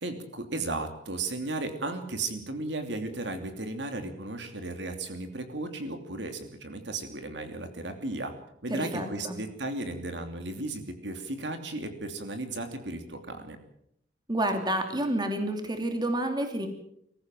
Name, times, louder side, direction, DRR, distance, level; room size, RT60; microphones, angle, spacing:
voice 1, 0.0-8.3 8.6-13.6, right 2 dB, 70° right, 7 dB, 2.9 m, -35 dB
voice 2, 8.7-9.4 14.3-16.7, right 1 dB, 25° right, 5 dB, 2.9 m, -29 dB
24.0 x 15.0 x 7.7 m, 0.72 s
head